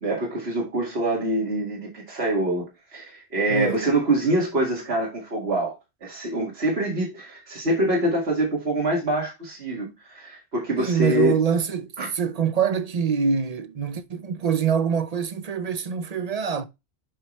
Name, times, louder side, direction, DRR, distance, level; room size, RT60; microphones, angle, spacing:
voice 1, 0.0-2.6 2.9-5.7 6.0-11.3 12.0-12.1, right 1 dB, 75° right, 2.3 m, -25 dB
voice 2, 3.5-3.9 10.8-11.9 12.1-16.7, right 6 dB, 45° right, 0.6 m, -24 dB
7.9 x 4.7 x 3.1 m
omnidirectional pair, 1.1 m